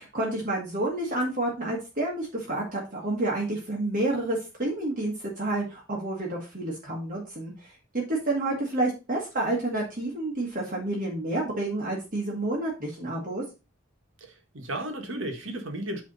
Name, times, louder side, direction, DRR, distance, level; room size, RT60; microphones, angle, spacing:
voice 1, 0.0-13.4, right 2 dB, 45° right, 1.5 m, -29 dB
voice 2, 14.2-16.0, right 1 dB, 75° right, 1.6 m, -34 dB
8.3 x 3.4 x 4.1 m
head